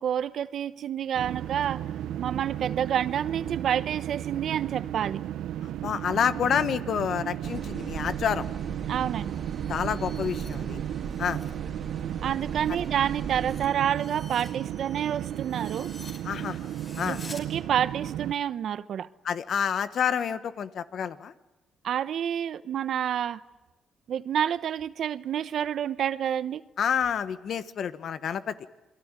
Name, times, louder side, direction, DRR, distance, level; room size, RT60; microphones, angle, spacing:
voice 1, 0.0-1.8 2.2-5.2 8.9-9.3 12.2-15.9 17.1-19.1 21.8-23.4 24.1-26.6, right 9 dB, 65° right, 1.0 m, -28 dB
sound 1, 1.1-18.3, right 11 dB, 85° right, 1.0 m, -34 dB
voice 2, 5.6-8.5 9.7-10.8 11.2-11.4 16.2-16.6 17.0-17.2 19.2-21.3 26.8-28.5, left 8 dB, 60° left, 1.4 m, -28 dB
sound 2, 7.4-13.7, right 5 dB, 45° right, 3.0 m, -39 dB
sound 3, 9.2-11.6 11.9-17.4, left 2 dB, 35° left, 5.4 m, -50 dB
28.0 x 22.0 x 9.1 m
cardioid pair, 90°, 0 cm